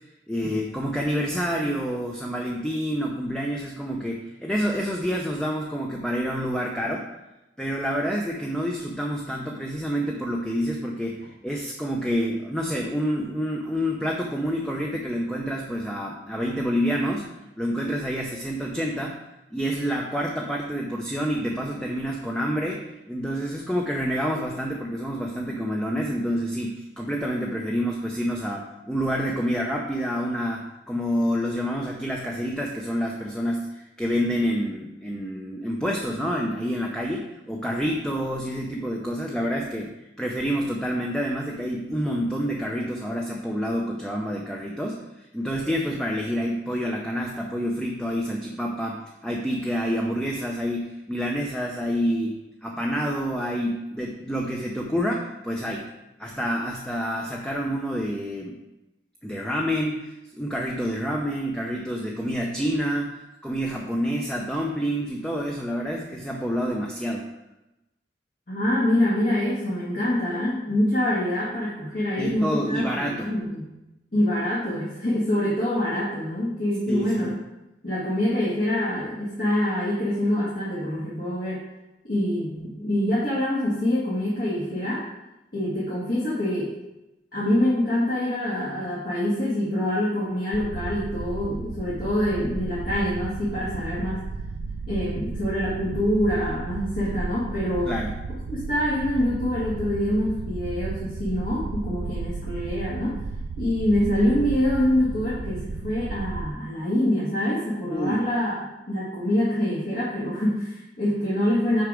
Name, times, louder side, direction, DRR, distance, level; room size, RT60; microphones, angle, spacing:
voice 1, 0.3-7.1 7.6-17.3 17.6-19.2 19.5-45.0 45.3-52.3 52.6-55.9 56.2-58.6 59.2-67.3 72.2-73.3 76.9-77.3 97.9-98.1 107.9-108.2, equal, 5° left, -1 dB, 0.5 m, -28 dB
voice 2, 68.5-73.7 74.1-77.3 77.8-81.6 82.0-85.0 85.5-86.7 87.3-94.2 94.9-97.9 98.5-103.2 103.6-111.8, left 1 dB, 55° left, -8 dB, 1.8 m, -25 dB
sound 1, 90.5-106.5, right 4 dB, 75° right, 0.3 m, -33 dB
6.6 x 4.8 x 4.9 m, 0.96 s
head